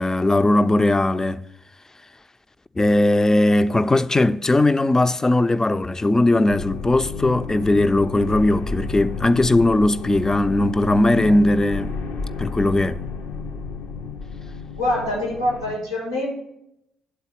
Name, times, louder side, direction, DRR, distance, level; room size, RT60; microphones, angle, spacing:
voice 1, 0.0-1.5 2.8-11.9 12.4-13.0, left 2 dB, 20° left, 0.4 m, -19 dB
sound 1, 6.5-15.7, left 4 dB, 65° left, 0.6 m, -31 dB
voice 2, 14.7-16.3, left 1 dB, 90° left, 1.5 m, -24 dB
9.6 x 4.0 x 5.7 m
figure-of-eight pair, 40°, 3 cm